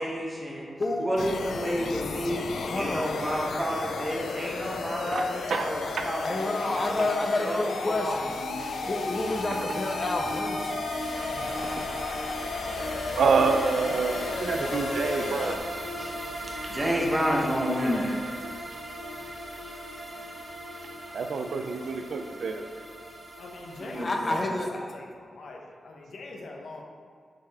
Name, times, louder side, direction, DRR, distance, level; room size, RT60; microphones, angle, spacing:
voice 1, 0.0-0.7 1.0-7.1 7.4-8.9 12.6-12.8 16.0-16.1 16.7-18.2 23.8-24.4, equal, 20° right, -3 dB, 1.1 m, -30 dB
voice 2, 0.8-1.1 2.5-3.1 6.2-8.3 8.9-10.9 17.7-18.1 24.0-25.0, left 2 dB, 30° left, 3 dB, 0.6 m, -30 dB
sound 1, 1.2-15.6, left 4 dB, 80° left, 0.4 m, -34 dB
voice 3, 4.9-6.1 8.8-8.9 9.5-9.7 10.9-11.9 13.1-15.6 21.1-22.7, right 4 dB, 75° right, 6 dB, 0.4 m, -28 dB
sound 2, 7.8-24.0, right 1 dB, 45° right, 1.7 m, -37 dB
voice 4, 14.2-15.5 23.4-24.6 24.9-26.8, left 2 dB, 65° left, 0 dB, 0.9 m, -42 dB
7.6 x 4.9 x 3.5 m, 2.1 s
wide cardioid pair, 165°, 0 cm